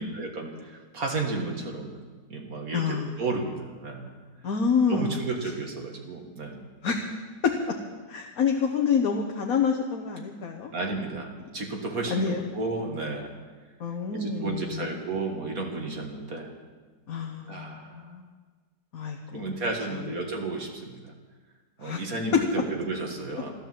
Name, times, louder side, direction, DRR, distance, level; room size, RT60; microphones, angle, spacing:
voice 1, 0.0-2.0 2.3-4.1 4.9-6.7 10.7-13.3 14.1-16.5 17.5-18.2 19.3-21.1 21.8-23.5, right 3 dB, 55° right, 2 dB, 2.1 m, -33 dB
voice 2, 2.7-3.1 4.4-5.2 6.8-7.0 7.4-7.8 8.1-10.7 12.1-12.4 13.8-14.9 17.1-18.3 18.9-19.6 19.9-20.1 21.8-22.0 22.3-22.4, left 6 dB, 55° left, 1 dB, 1.6 m, -27 dB
13.5 x 13.0 x 7.6 m, 1.4 s
omnidirectional pair, 1.8 m